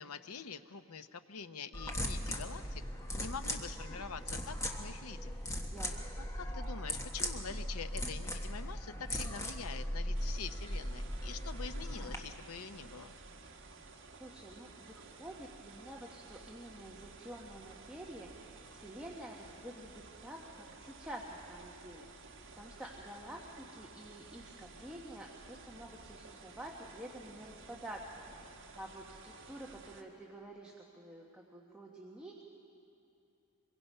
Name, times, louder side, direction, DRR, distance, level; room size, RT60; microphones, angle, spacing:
voice 1, 0.0-2.8 3.1-5.4 6.4-13.1, left 6 dB, 80° left, 10 dB, 0.8 m, -45 dB
sound 1, 1.7-12.2, equal, 15° left, 1.3 m, -39 dB
sound 2, 10.1-30.0, right 3 dB, 55° right, 1.6 m, -54 dB
voice 2, 14.2-22.1 22.6-28.5 28.7-32.4, right 1 dB, 5° right, -3 dB, 1.3 m, -49 dB
24.5 x 22.5 x 5.5 m, 2.7 s
head